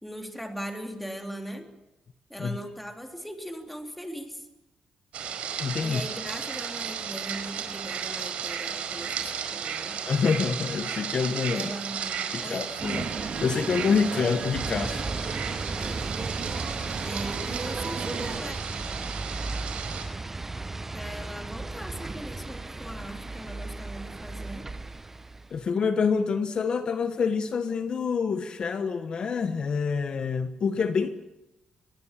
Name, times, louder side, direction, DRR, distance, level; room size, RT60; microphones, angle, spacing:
voice 1, 0.0-1.7 2.3-4.5 5.8-10.0 11.5-12.7 15.8-16.1 17.0-18.6 20.9-24.7, equal, 5° left, 4 dB, 3.2 m, -39 dB
sound 1, 5.1-20.0, right 7 dB, 75° right, 4.8 m, -34 dB
voice 2, 5.6-6.0 10.1-11.7 12.3-15.0 25.5-31.1, left 5 dB, 45° left, 9 dB, 1.2 m, -27 dB
sound 2, 12.8-18.4, right 5 dB, 45° right, 2.3 m, -35 dB
sound 3, 14.5-25.6, right 2 dB, 15° right, 0.9 m, -36 dB
25.5 x 20.5 x 7.5 m, 0.96 s
cardioid pair, 135°, 2 cm